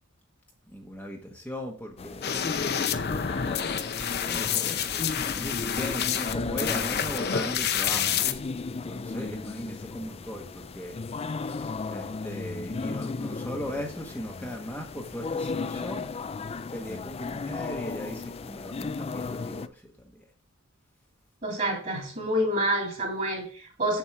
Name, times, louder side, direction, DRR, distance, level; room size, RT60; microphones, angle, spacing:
voice 1, 0.7-2.5 4.0-8.3 8.5-10.9 11.3-16.1 16.7-20.3, equal, 10° left, 0 dB, 1.1 m, -38 dB
sound 1, 2.0-19.7, left 4 dB, 30° left, 0.4 m, -35 dB
sound 2, 2.2-8.3, left 8 dB, 50° left, 0.7 m, -29 dB
voice 2, 21.4-24.0, right 1 dB, 40° right, 0 dB, 3.2 m, -28 dB
7.3 x 7.2 x 4.6 m, 0.40 s
head